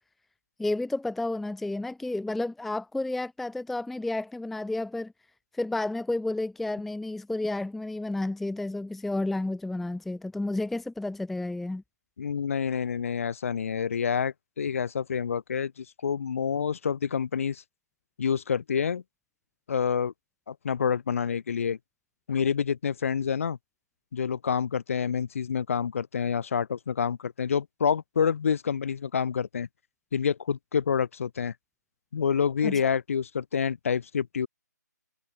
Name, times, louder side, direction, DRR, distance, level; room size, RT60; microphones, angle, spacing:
voice 1, 0.6-5.1 5.5-11.8 32.6-32.7, left 2 dB, ahead, 0.5 m, -31 dB
voice 2, 12.2-17.6 18.2-19.0 19.7-20.1 20.5-21.8 22.3-23.6 24.1-29.7 30.1-31.5 32.1-34.5, left 7 dB, 45° left, 1.6 m, -28 dB
figure-of-eight pair, 145°, 10 cm